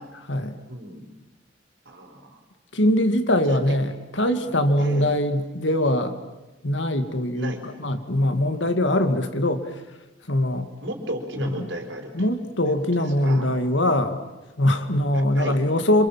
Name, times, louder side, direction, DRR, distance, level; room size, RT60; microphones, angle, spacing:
voice 1, 0.7-1.1 1.8-2.4 3.5-3.6 4.8-5.1 7.3-7.6 10.8-12.1 12.6-13.4 15.3-15.6, right 1 dB, 75° right, 4 dB, 4.7 m, -34 dB
voice 2, 2.7-6.2 6.6-9.6 10.3-10.7 11.4-11.7 12.1-14.2 14.6-16.1, left 1 dB, 80° left, 8 dB, 2.3 m, -22 dB
27.0 x 27.0 x 7.5 m, 1.1 s
head